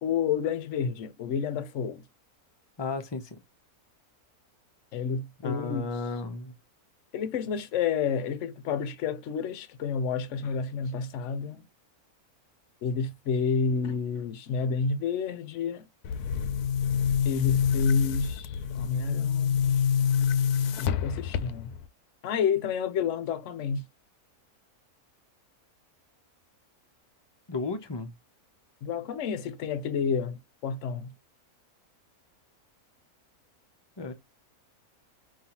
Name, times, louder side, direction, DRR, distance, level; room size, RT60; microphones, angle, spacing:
voice 1, 0.0-2.0 4.9-5.9 7.1-11.7 12.8-15.9 17.2-20.1 20.8-21.7 22.2-23.9 28.8-31.1, left 5 dB, 60° left, 1.0 m, -30 dB
voice 2, 2.8-3.4 5.4-6.5 27.5-28.1 34.0-34.1, left 3 dB, 25° left, 0.7 m, -33 dB
Boom, 16.0-21.9, left 7 dB, 80° left, 1.1 m, -26 dB
5.4 x 2.9 x 3.0 m
omnidirectional pair, 1.6 m